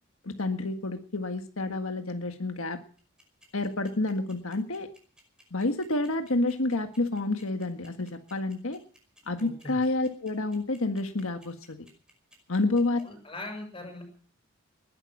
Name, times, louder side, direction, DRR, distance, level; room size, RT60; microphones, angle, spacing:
voice 1, 0.2-2.8 3.5-4.9 5.5-8.8 9.3-11.9 12.5-13.0, left 2 dB, 85° left, 6 dB, 1.6 m, -29 dB
sound 1, 3.0-13.0, equal, 5° right, 5.4 m, -57 dB
voice 2, 9.4-9.8 12.9-14.0, left 2 dB, 25° left, 4 dB, 6.5 m, -40 dB
20.5 x 11.5 x 6.2 m, 0.43 s
head